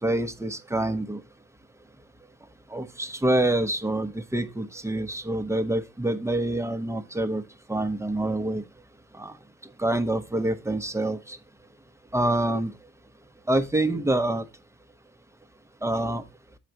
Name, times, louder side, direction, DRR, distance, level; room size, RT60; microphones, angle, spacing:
voice 1, 0.0-1.2 2.7-7.4 7.7-8.6 9.2-9.3 9.8-11.4 12.1-12.7 13.5-14.4 15.8-16.2, right 1 dB, 10° right, 0.9 m, -26 dB
7.8 x 5.0 x 4.5 m
cardioid pair, 90°, 30 cm